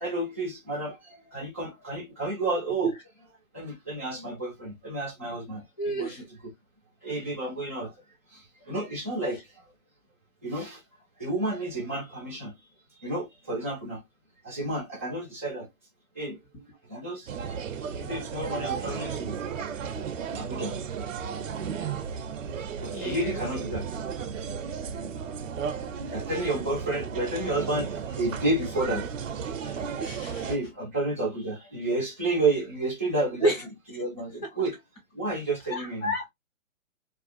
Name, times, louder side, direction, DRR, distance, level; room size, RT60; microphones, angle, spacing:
voice 1, 0.0-2.9 3.5-6.1 7.0-7.9 8.7-9.4 10.4-10.8 11.2-12.5 13.0-14.0 14.4-15.7 16.2-16.4 16.9-17.3 17.8-19.8 20.4-20.7 22.3-22.4 22.8-23.9 24.9-25.0 26.1-27.9 28.2-29.0 30.4-33.5 33.9-34.8 35.1-36.1, right 2 dB, 10° right, 0.4 m, -31 dB
voice 2, 5.8-6.2 16.5-16.6 22.9-23.4 29.7-30.5 33.4-33.6 35.7-36.3, right 1 dB, 15° left, 0.8 m, -30 dB
sound 1, 17.3-30.6, right 7 dB, 65° right, 0.6 m, -34 dB
2.5 x 2.3 x 2.4 m
hypercardioid pair, 145°, 41 cm